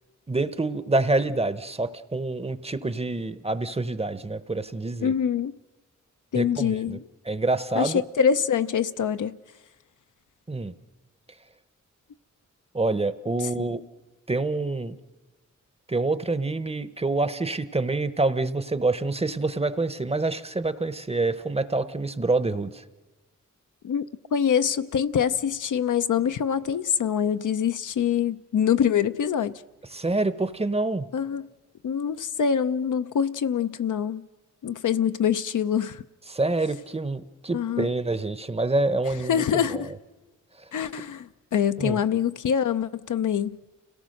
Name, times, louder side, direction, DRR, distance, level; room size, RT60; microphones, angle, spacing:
voice 1, 0.3-5.1 6.3-7.0 7.3-8.0 10.5-10.7 12.7-13.8 14.3-15.0 15.9-22.8 29.9-31.1 36.3-39.8 41.8-42.0, right 2 dB, 20° right, 0.8 m, -27 dB
voice 2, 5.0-5.5 6.3-7.0 7.8-9.4 13.6-13.7 23.8-24.0 24.3-29.6 31.1-31.5 31.8-34.2 34.6-36.0 37.5-37.9 39.3-39.9 40.7-43.5, left 8 dB, 75° left, 0.7 m, -25 dB
29.0 x 17.5 x 6.5 m
wide cardioid pair, 90°, 31 cm